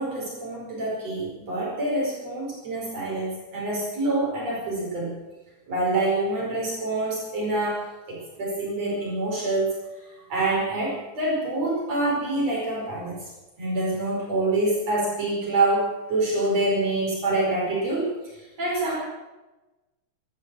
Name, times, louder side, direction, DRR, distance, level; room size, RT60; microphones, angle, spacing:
voice 1, 0.0-5.2 5.7-9.7 10.3-13.2 13.6-18.1 18.6-19.0, right 2 dB, 60° right, -4 dB, 6.1 m, -26 dB
15.0 x 12.5 x 7.8 m, 1.1 s
omnidirectional pair, 3.3 m